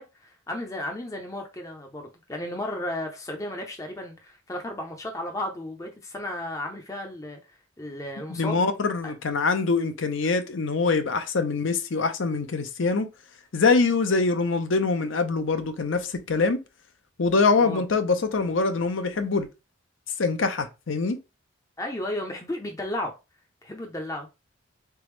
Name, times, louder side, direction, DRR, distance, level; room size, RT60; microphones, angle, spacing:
voice 1, 0.0-7.4 7.8-8.7 9.0-9.1 17.6-17.8 21.8-23.2 23.6-24.3, left 1 dB, 15° left, 0.6 m, -34 dB
voice 2, 8.3-13.1 13.5-16.6 17.2-19.5 20.2-21.2, left 4 dB, 70° left, 0.7 m, -24 dB
3.9 x 3.5 x 3.2 m
head